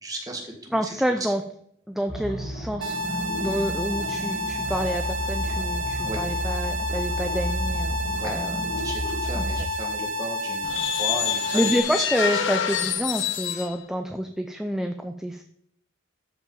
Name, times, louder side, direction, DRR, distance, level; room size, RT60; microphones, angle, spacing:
voice 1, 0.0-1.3 3.4-3.6 6.0-6.2 8.2-8.3 8.8-11.7 12.0-12.1 12.3-12.4, right 1 dB, 20° right, 1 dB, 1.7 m, -36 dB
voice 2, 0.7-1.4 1.9-3.0 3.4-7.9 8.2-8.6 9.4-9.5 11.5-15.4, equal, ahead, 5 dB, 0.4 m, -28 dB
sound 1, 2.1-9.6, equal, 35° left, 2.6 m, -32 dB
sound 2, 2.8-11.8, left 1 dB, 70° right, 0.8 m, -30 dB
sound 3, 10.6-13.8, left 9 dB, 65° left, 0.8 m, -27 dB
13.0 x 5.1 x 4.0 m, 0.68 s
head